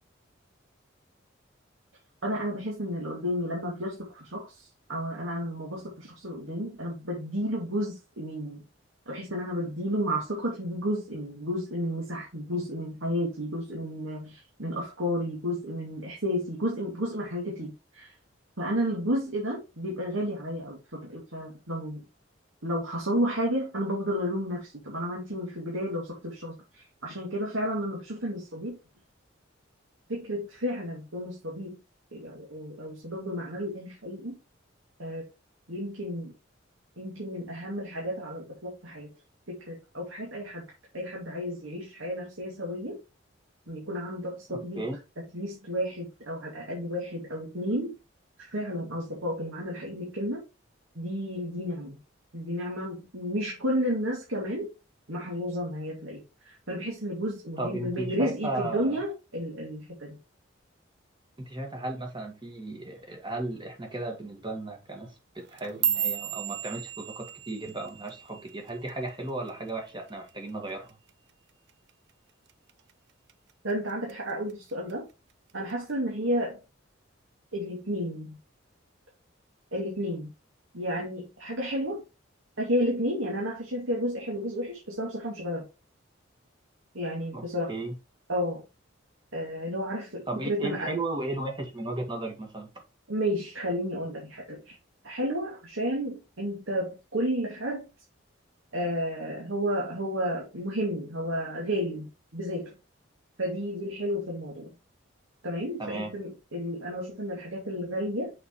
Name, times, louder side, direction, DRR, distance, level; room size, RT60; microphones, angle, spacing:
voice 1, 2.2-8.6 9.1-18.1 18.6-22.0 22.6-28.7 30.1-31.8 32.1-34.3 35.0-35.3 35.7-36.3 37.0-39.1 39.5-40.6 40.9-43.0 43.7-44.8 45.3-48.0 48.5-50.4 50.9-52.0 52.3-54.7 55.1-60.2 73.6-75.1 75.5-76.6 77.5-78.4 79.7-80.3 80.7-82.0 82.6-85.7 86.9-87.7 88.3-88.6 89.3-90.9 93.1-94.7 95.0-97.9 98.7-102.7 103.4-104.7 105.4-108.3, equal, 80° right, 2.5 m, -32 dB
voice 2, 44.5-45.0 57.6-59.0 61.4-70.9 87.3-88.0 90.3-92.7 105.8-106.1, right 2 dB, 25° right, 1.9 m, -35 dB
sound 1, 65.4-69.8 70.1-70.5 70.9-71.3 71.7-71.9 72.5-72.9 73.3-74.1 74.5-74.9 75.7-75.8, right 10 dB, 55° right, 0.5 m, -33 dB
6.6 x 5.7 x 3.1 m
head